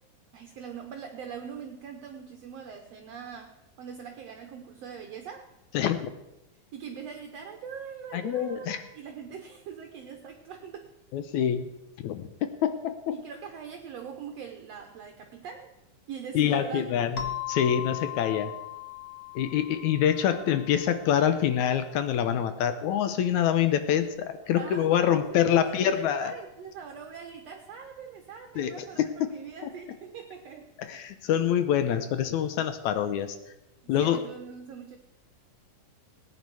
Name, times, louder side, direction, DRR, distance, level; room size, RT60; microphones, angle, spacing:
voice 1, 0.3-5.5 6.7-10.9 13.1-15.7 16.1-16.9 24.6-25.3 25.5-30.7 34.0-35.0, right 7 dB, 70° right, 4 dB, 1.7 m, -42 dB
voice 2, 5.7-6.1 8.1-8.8 11.1-11.7 12.0-12.3 12.6-13.2 16.3-18.5 19.4-26.3 28.6-29.3 30.8-33.4 33.9-34.2, left 9 dB, 75° left, 10 dB, 1.9 m, -26 dB
sound 1, 17.2-21.6, left 11 dB, 60° left, 1.2 m, -39 dB
18.5 x 9.6 x 4.7 m, 0.91 s
omnidirectional pair, 3.8 m